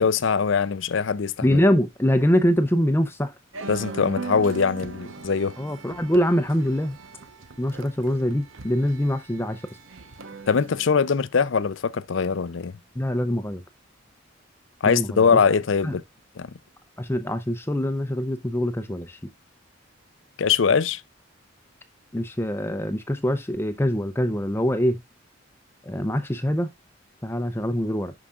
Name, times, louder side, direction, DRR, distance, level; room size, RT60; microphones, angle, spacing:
voice 1, 0.0-1.6 3.7-5.5 10.5-12.7 14.8-16.0 16.4-16.5 20.4-21.0, left 5 dB, 70° left, 0.5 m, -22 dB
voice 2, 1.4-3.3 5.6-7.0 7.6-9.6 13.0-13.6 14.8-15.2 15.8-15.9 17.0-19.2 22.1-25.0 25.9-26.7 27.2-28.1, equal, 10° left, 0.6 m, -24 dB
sound 1, 3.5-10.9, right 4 dB, 85° right, 1.0 m, -39 dB
11.0 x 4.9 x 2.4 m
head